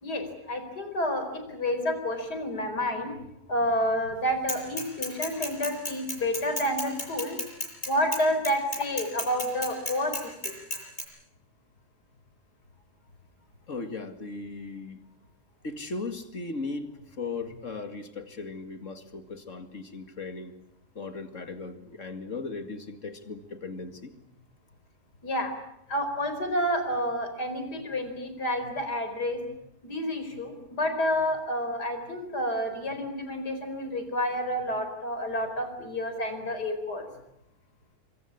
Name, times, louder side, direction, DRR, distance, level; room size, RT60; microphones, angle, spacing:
voice 1, 0.0-3.1 3.5-7.4 7.9-10.5 25.2-25.5 25.9-29.4 29.8-37.0, equal, 90° left, 7 dB, 5.2 m, -29 dB
Bicycle / Mechanisms, 4.5-11.0, left 1 dB, 30° left, 7.2 m, -33 dB
voice 2, 13.7-15.0 15.6-16.9 17.2-20.5 20.9-24.1 34.9-35.0, left 3 dB, 50° left, 8 dB, 2.6 m, -37 dB
25.0 x 24.5 x 8.5 m, 0.82 s
omnidirectional pair, 1.7 m